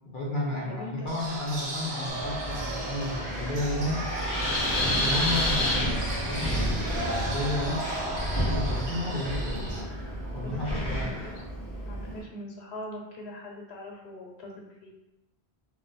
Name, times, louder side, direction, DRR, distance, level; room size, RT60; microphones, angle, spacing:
voice 1, 0.0-4.0 4.8-7.8 8.4-11.2, left 1 dB, 55° left, -4 dB, 0.8 m, -33 dB
voice 2, 0.7-1.1 10.4-11.4 11.8-14.5 14.8-14.9, left 1 dB, 85° left, 0 dB, 0.9 m, -41 dB
sound 1, 1.1-9.8, right 2 dB, 75° right, 0.9 m, -35 dB
Wind, 2.1-12.2, equal, 25° left, 0.5 m, -30 dB
2.4 x 2.2 x 3.9 m, 0.92 s
omnidirectional pair, 1.1 m